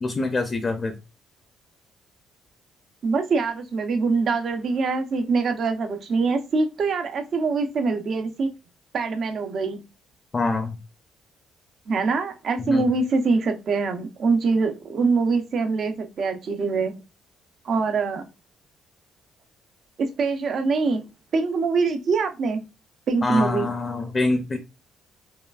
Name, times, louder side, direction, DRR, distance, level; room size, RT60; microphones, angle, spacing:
voice 1, 0.0-0.9 10.3-10.8 12.6-12.9 23.2-24.6, left 3 dB, 35° left, 0.6 m, -25 dB
voice 2, 3.0-8.5 8.9-9.8 11.9-16.9 17.6-18.3 20.0-21.0 21.3-22.6 23.1-23.7, right 4 dB, 60° right, 0.8 m, -24 dB
5.0 x 2.2 x 2.4 m
supercardioid pair, 70°, 0 cm